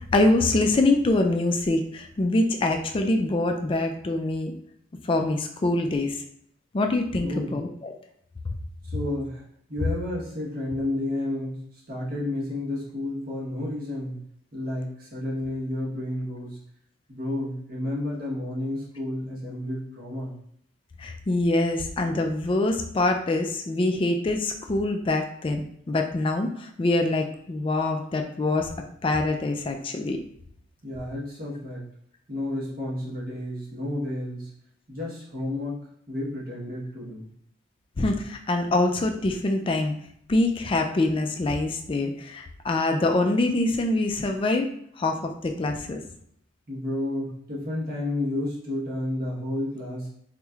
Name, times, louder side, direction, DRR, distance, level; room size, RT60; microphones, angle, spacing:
voice 1, 0.1-4.5 5.0-6.2 6.7-7.9 21.0-28.7 29.0-30.2 38.0-39.9 40.3-44.7 45.0-46.0, left 2 dB, 25° left, 4 dB, 0.3 m, -24 dB
voice 2, 7.2-7.6 8.9-9.4 9.7-14.2 14.5-16.6 17.1-20.3 30.8-31.8 32.3-34.5 34.9-35.8 36.1-37.3 46.7-50.1, left 1 dB, 50° right, -5 dB, 1.1 m, -31 dB
4.1 x 3.1 x 2.3 m, 0.71 s
head